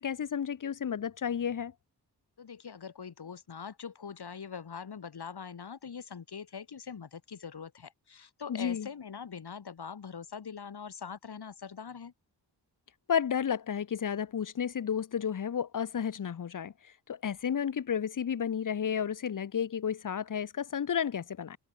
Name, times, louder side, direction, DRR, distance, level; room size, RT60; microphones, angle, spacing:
voice 1, 0.0-1.7 8.5-8.9 13.1-16.7 17.1-21.6, left 8 dB, 50° left, 0.9 m, -32 dB
voice 2, 2.4-12.1, left 6 dB, 65° left, 4.8 m, -43 dB
wide cardioid pair, 135°, 42 cm